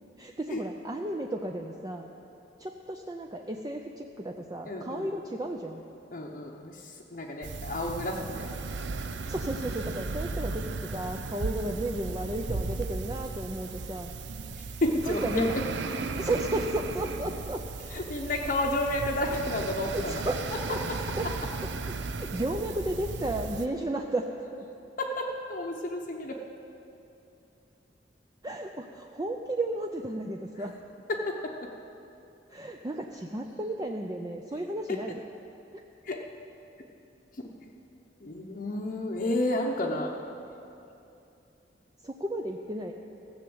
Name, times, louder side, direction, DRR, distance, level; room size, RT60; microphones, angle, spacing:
voice 1, 0.2-2.1 2.6-5.8 9.3-14.1 15.1-15.5 16.2-17.6 19.9-20.4 20.7-21.3 22.1-24.3 24.5-24.6 28.4-30.7 32.5-35.2 35.7-35.8 42.0-42.9, right 1 dB, 20° right, 2 dB, 0.5 m, -33 dB
voice 2, 4.7-5.1 6.1-8.6 14.6-15.5 17.9-20.2 20.9-21.0 25.0-26.4 31.1-31.7 34.9-35.0 36.0-36.3 37.4-37.5 38.2-40.1, left 1 dB, 50° left, -1 dB, 0.8 m, -31 dB
sound 1, 7.4-23.7, right 3 dB, 90° right, 0.6 m, -35 dB
15.0 x 6.9 x 7.9 m, 2.8 s
head